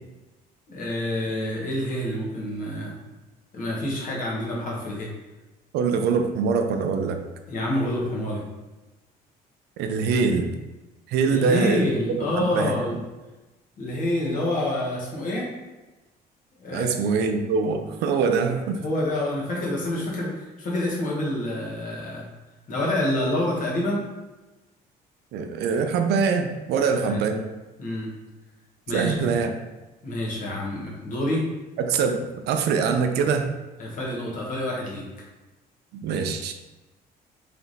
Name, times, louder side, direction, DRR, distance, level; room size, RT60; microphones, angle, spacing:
voice 1, 0.7-2.9 3.5-5.1 7.5-8.4 11.3-12.9 13.8-15.5 16.6-17.0 18.4-22.3 22.7-24.0 26.8-27.3 27.8-28.1 28.9-29.3 30.0-31.4 33.8-35.0, left 1 dB, 50° left, -3 dB, 1.4 m, -27 dB
voice 2, 5.7-7.2 9.8-10.5 11.1-12.8 16.7-18.8 25.3-27.4 28.9-29.5 31.8-33.5 35.9-36.5, right 5 dB, 80° right, 6 dB, 0.5 m, -24 dB
3.4 x 2.9 x 4.0 m, 1.1 s
cardioid pair, 110°, 17 cm